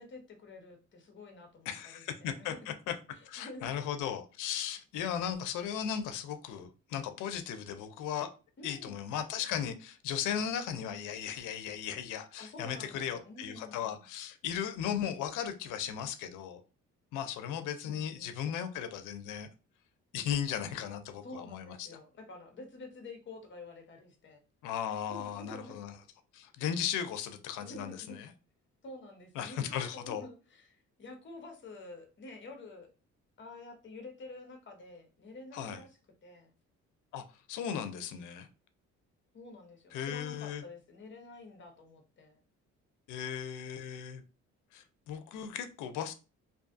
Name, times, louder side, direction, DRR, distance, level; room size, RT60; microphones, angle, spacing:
voice 1, 0.0-2.7 3.1-3.7 8.6-9.0 12.4-14.0 17.9-18.4 21.2-24.4 25.1-25.7 27.6-28.2 28.8-32.9 33.4-36.5 39.3-42.4, left 2 dB, 40° left, 0.8 m, -49 dB
voice 2, 1.7-2.9 3.3-8.3 8.6-16.6 17.1-19.5 20.1-22.0 24.6-25.9 26.3-28.3 29.4-30.2 35.5-35.8 37.1-37.2 37.5-38.5 39.9-40.6 43.1-44.2 44.7-46.1, left 9 dB, 90° left, 0.5 m, -36 dB
2.5 x 2.3 x 2.4 m
cardioid pair, 90°, 30 cm